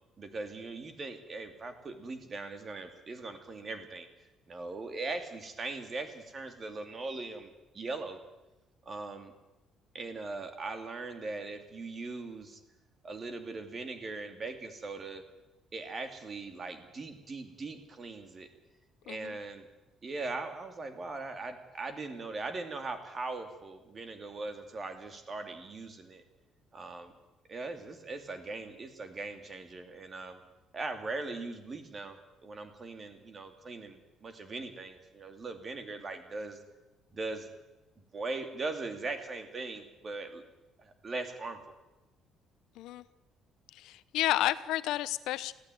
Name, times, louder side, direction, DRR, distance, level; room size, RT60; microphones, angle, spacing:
voice 1, 0.2-4.1 4.5-8.2 8.8-9.3 9.9-12.6 13.0-15.2 15.7-18.5 19.0-19.7 20.0-26.2 26.7-27.1 27.5-30.4 30.7-36.6 37.1-37.5 38.1-40.4 40.8-41.7, right 3 dB, 25° right, 7 dB, 2.6 m, -40 dB
voice 2, 19.1-19.4 42.8-43.0 43.7-45.5, left 14 dB, 85° left, 16 dB, 0.9 m, -31 dB
19.5 x 15.5 x 9.2 m, 1.0 s
cardioid pair, 155°, 0 cm